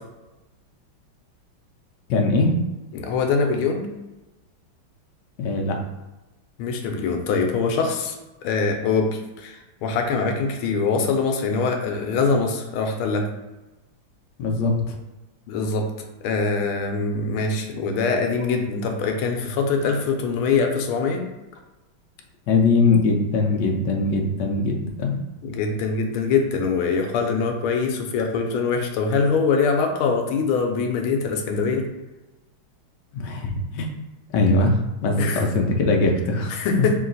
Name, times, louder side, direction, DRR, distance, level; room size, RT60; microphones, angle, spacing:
voice 1, 2.1-2.5 5.4-5.8 14.4-14.9 22.5-25.2 33.1-33.9 34.3-36.9, left 3 dB, 70° left, 1 dB, 1.1 m, -21 dB
voice 2, 2.9-3.9 6.6-8.2 8.4-13.2 15.5-15.8 16.2-21.2 25.4-31.8 35.2-35.4 36.5-36.9, left 4 dB, 85° left, 3 dB, 1.5 m, -23 dB
3.8 x 2.8 x 3.9 m, 1.1 s
omnidirectional pair, 2.3 m